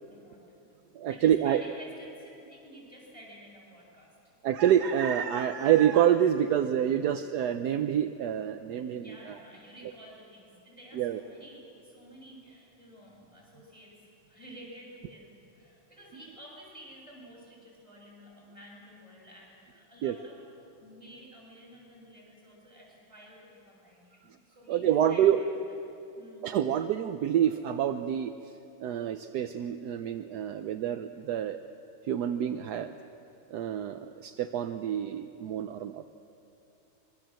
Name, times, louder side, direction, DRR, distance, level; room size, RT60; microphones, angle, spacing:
voice 1, 0.1-0.4 1.1-4.2 8.9-20.4 20.8-25.4 26.1-26.5, equal, 15° right, -3 dB, 7.7 m, -51 dB
voice 2, 0.9-1.6 4.4-9.4 10.9-11.2 20.0-20.2 24.7-25.4 26.4-28.5 28.8-31.6 32.0-32.9 33.5-36.0, right 10 dB, 65° right, 8 dB, 1.1 m, -27 dB
25.5 x 22.5 x 7.6 m, 2.8 s
omnidirectional pair, 2.2 m